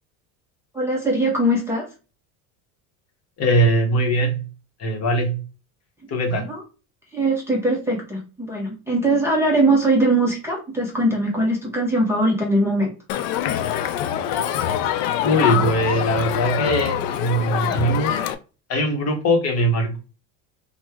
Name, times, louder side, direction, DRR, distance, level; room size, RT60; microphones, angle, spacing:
voice 1, 0.7-1.9 6.4-6.6 7.1-12.9, right 1 dB, 5° right, -4 dB, 0.6 m, -21 dB
voice 2, 3.4-4.5 4.8-5.4 6.1-6.4 15.2-18.1 18.7-20.0, right 1 dB, 40° left, 4 dB, 0.8 m, -21 dB
Crowd, 13.1-18.3, left 10 dB, 80° left, 0.5 m, -24 dB
2.9 x 2.1 x 3.4 m, 0.33 s
cardioid pair, 140°, 39 cm